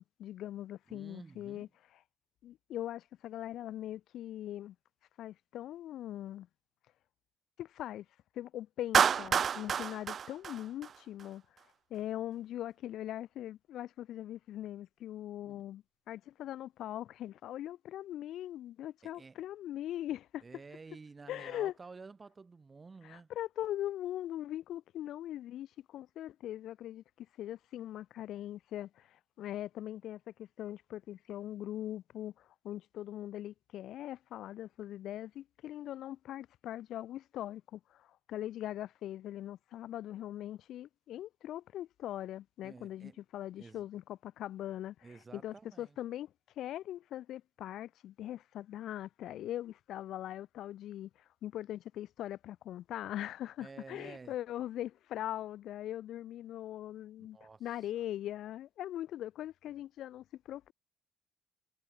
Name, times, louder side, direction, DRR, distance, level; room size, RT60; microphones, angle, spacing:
voice 1, 0.0-1.7 2.4-4.8 5.2-6.5 7.6-8.1 8.3-11.4 11.9-20.4 21.3-21.7 23.0-44.9 45.3-51.1 51.4-60.7, left 12 dB, 60° left, 4.1 m, -41 dB
voice 2, 0.9-1.7 15.5-15.6 19.0-19.4 20.4-23.3 42.6-43.2 43.6-43.9 45.0-46.0 53.6-54.4 57.2-57.6 58.0-58.1, right 4 dB, 20° right, 5.6 m, -52 dB
Clapping, 8.9-11.2, right 7 dB, 35° right, 0.8 m, -29 dB
cardioid pair, 155°, 0 cm